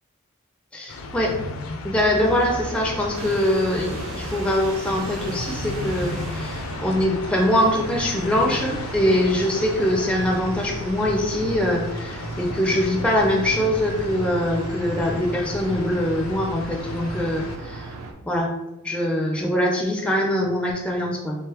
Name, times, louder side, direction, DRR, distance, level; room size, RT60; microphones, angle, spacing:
voice 1, 0.7-1.3 1.8-17.9 18.2-18.5 18.8-21.4, left 1 dB, 5° left, 0 dB, 0.4 m, -23 dB
sound 1, 0.9-17.6, left 3 dB, 75° left, 0.4 m, -34 dB
sound 2, 2.1-18.1, right 2 dB, 90° right, 0.5 m, -36 dB
sound 3, 3.1-7.2, right 2 dB, 65° right, 0.9 m, -41 dB
3.7 x 3.2 x 2.8 m, 1.0 s
head